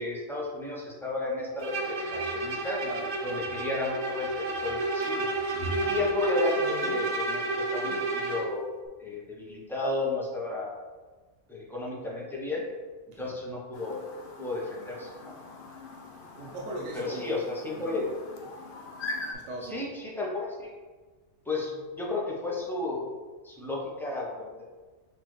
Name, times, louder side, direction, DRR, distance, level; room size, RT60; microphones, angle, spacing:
voice 1, 0.0-1.7 2.1-2.8 3.2-5.3 5.8-8.7 9.0-10.7 11.5-12.6 13.2-14.0 14.4-15.4 16.9-18.1 19.6-20.7 21.5-23.0 23.4-24.7, left 3 dB, ahead, -4 dB, 0.7 m, -33 dB
Bowed string instrument, 1.6-8.6, right 2 dB, 60° right, 0.6 m, -30 dB
voice 2, 2.8-3.5 5.6-5.9 13.1-13.4 16.4-17.3 17.7-18.1 19.3-19.9, right 2 dB, 75° right, -2 dB, 1.0 m, -40 dB
Chirp tweet, 13.7-19.3, left 2 dB, 55° left, 0.7 m, -42 dB
6.0 x 2.6 x 3.1 m, 1.4 s
omnidirectional pair, 1.2 m